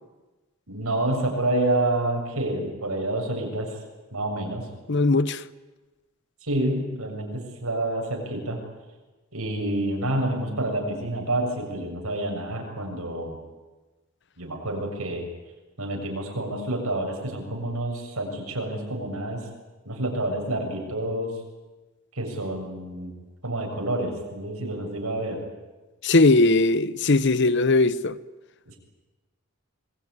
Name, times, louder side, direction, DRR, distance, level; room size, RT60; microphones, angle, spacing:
voice 1, 0.7-3.8 4.1-4.7 6.4-8.6 9.3-13.4 14.4-15.3 15.8-19.4 19.9-21.3 22.1-23.1 23.4-25.5 28.7-28.8, right 1 dB, 85° right, 7.2 m, -28 dB
voice 2, 4.9-5.4 26.0-28.2, left 2 dB, 55° left, 0.9 m, -19 dB
26.5 x 21.0 x 9.6 m
head